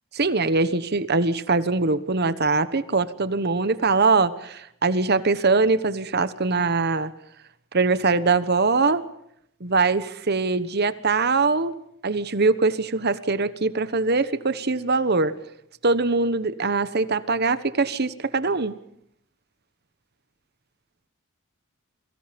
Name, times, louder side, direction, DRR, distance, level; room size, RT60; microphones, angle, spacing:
voice 1, 0.1-7.1 7.7-9.0 9.6-15.3 15.8-18.7, right 3 dB, 50° right, 13 dB, 1.2 m, -22 dB
29.5 x 23.5 x 5.3 m, 0.72 s
head